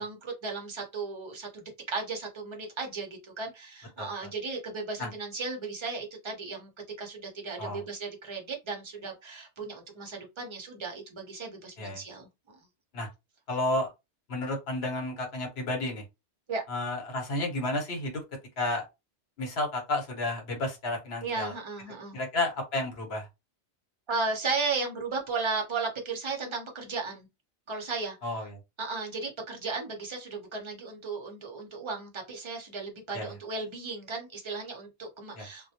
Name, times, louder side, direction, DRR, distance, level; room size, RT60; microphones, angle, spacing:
voice 1, 0.0-3.1 3.4-6.7 7.0-12.3 16.5-16.6 21.2-22.2 24.1-27.3 27.7-28.2 28.8-35.7, right 4 dB, 30° right, 0.6 m, -35 dB
voice 2, 4.0-4.3 5.0-5.1 7.6-7.8 11.8-12.0 12.9-13.1 13.5-13.9 14.3-16.0 16.7-18.2 18.6-18.8 19.4-21.5 22.1-23.3 28.2-28.6 33.1-33.4 35.4-35.5, left 2 dB, 70° left, 1.1 m, -31 dB
2.1 x 2.1 x 2.7 m
omnidirectional pair, 1.1 m